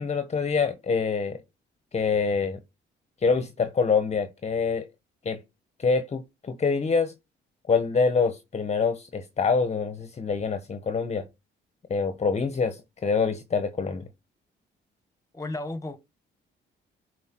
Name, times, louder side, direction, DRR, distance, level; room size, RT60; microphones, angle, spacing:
voice 1, 0.0-1.4 1.9-2.6 3.2-4.8 5.2-5.4 5.8-7.1 7.7-11.3 11.9-14.1, left 5 dB, 35° left, 1.0 m, -25 dB
voice 2, 15.3-16.0, left 2 dB, 15° left, 1.5 m, -33 dB
11.0 x 4.6 x 4.5 m
cardioid pair, 90°, 20 cm